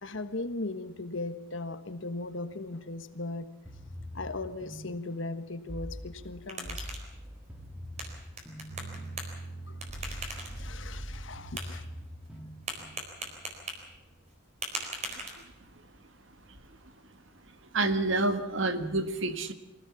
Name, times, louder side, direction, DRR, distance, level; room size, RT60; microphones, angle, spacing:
voice 1, 0.0-3.5 4.1-6.9 10.0-11.8, left 2 dB, 65° left, 1.4 m, -38 dB
sound 1, 3.6-13.4, equal, 5° right, 1.8 m, -44 dB
sound 2, 6.1-15.8, right 2 dB, 35° right, 4.1 m, -43 dB
sound 3, 8.7-14.2, right 2 dB, 90° right, 4.0 m, -46 dB
voice 2, 17.7-19.5, right 2 dB, 65° right, 1.6 m, -28 dB
24.0 x 16.5 x 7.2 m
head